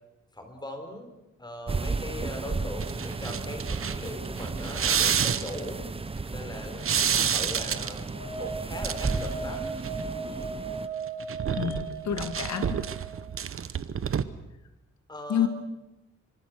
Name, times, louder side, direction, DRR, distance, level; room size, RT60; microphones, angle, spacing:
voice 1, 0.3-1.1 1.4-5.8 6.3-8.0 8.4-9.6 15.1-15.5, left 1 dB, 15° left, 5 dB, 4.2 m, -40 dB
sound 1, 1.7-10.9, right 3 dB, 20° right, 0.9 m, -34 dB
sound 2, 2.8-5.7 6.8-8.1 8.7-9.4 9.7-10.0 11.1-14.2, right 8 dB, 45° right, 1.0 m, -29 dB
sound 3, 8.1-13.2, right 4 dB, 90° left, 7.0 m, -37 dB
voice 2, 11.6-12.8 15.3-15.5, left 9 dB, 70° left, 8 dB, 2.5 m, -28 dB
26.5 x 25.0 x 6.2 m, 0.97 s
wide cardioid pair, 160°, 29 cm